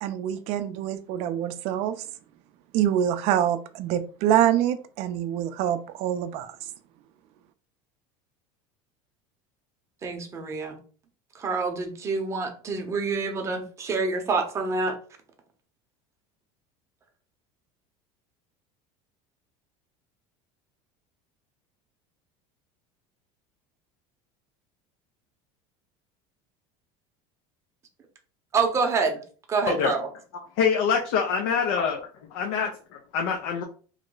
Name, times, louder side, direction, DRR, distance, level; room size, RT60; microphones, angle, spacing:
voice 1, 0.0-2.0 2.7-6.6, right 10 dB, 50° right, 0.4 m, -25 dB
voice 2, 10.0-10.8 11.3-14.9 28.5-29.2 29.5-30.1, right 4 dB, 20° right, 0.7 m, -27 dB
voice 3, 30.6-32.0 32.3-33.6, left 6 dB, 75° left, 0.5 m, -25 dB
3.0 x 2.1 x 3.8 m
cardioid pair, 150°, 13 cm